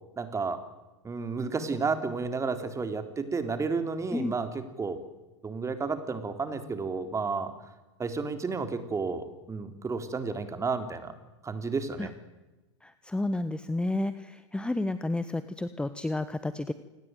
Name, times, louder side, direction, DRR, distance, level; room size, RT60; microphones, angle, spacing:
voice 1, 0.2-0.6 1.0-5.0 5.4-7.5 8.0-11.1 11.4-12.1, right 4 dB, 20° right, 9 dB, 3.7 m, -32 dB
voice 2, 12.8-16.7, left 2 dB, 5° left, 12 dB, 1.4 m, -31 dB
28.0 x 20.0 x 9.2 m, 1.1 s
hypercardioid pair, 100°, 15 cm